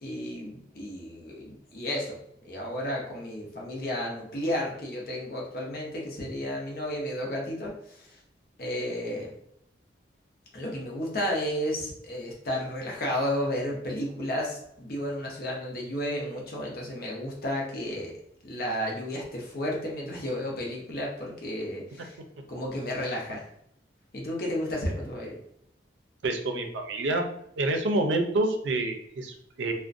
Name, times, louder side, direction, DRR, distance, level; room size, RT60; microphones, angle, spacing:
voice 1, 0.0-8.2 8.6-9.3 10.5-18.1 18.4-22.2 22.5-23.5 24.1-25.4, equal, 55° left, -2 dB, 0.7 m, -32 dB
voice 2, 26.2-27.3 27.6-29.7, right 2 dB, 85° right, 4 dB, 0.4 m, -27 dB
2.4 x 2.1 x 2.5 m, 0.72 s
head